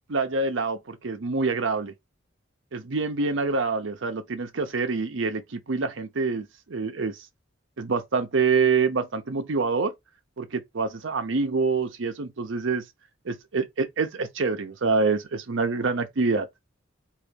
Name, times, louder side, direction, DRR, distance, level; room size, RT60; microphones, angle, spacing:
voice 1, 0.1-1.9 2.7-7.2 7.8-9.9 10.4-12.8 13.2-16.5, right 4 dB, 70° right, 0.7 m, -26 dB
3.8 x 2.6 x 3.5 m
head